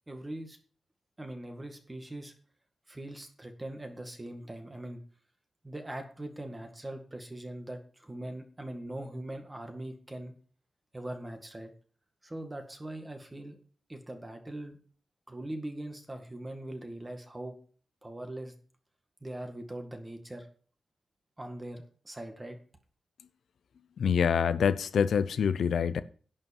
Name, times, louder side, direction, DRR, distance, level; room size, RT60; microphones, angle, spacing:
voice 1, 0.1-0.6 1.2-2.3 2.9-5.0 5.6-10.3 10.9-11.7 12.2-13.6 13.9-14.8 15.3-17.6 18.0-18.5 19.2-20.5 21.4-22.6, right 1 dB, 15° right, 1.9 m, -41 dB
voice 2, 24.0-26.0, left 7 dB, 75° left, 0.6 m, -26 dB
11.0 x 5.5 x 7.1 m
wide cardioid pair, 140°, 0 cm